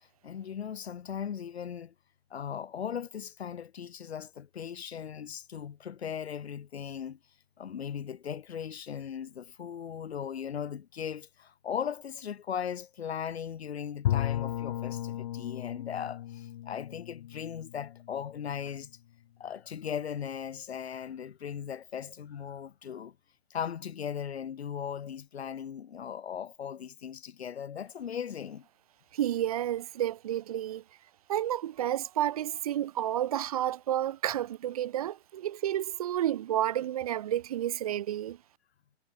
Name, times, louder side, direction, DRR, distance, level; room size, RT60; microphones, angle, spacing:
voice 1, 0.0-1.9 2.3-7.2 7.6-18.9 19.4-23.2 23.5-28.7, left 8 dB, 90° left, 1.7 m, -38 dB
Bowed string instrument, 14.0-18.9, left 13 dB, 35° left, 1.1 m, -35 dB
voice 2, 29.1-30.8 31.3-38.4, right 12 dB, 35° right, 0.9 m, -30 dB
hypercardioid pair, 170°, 31 cm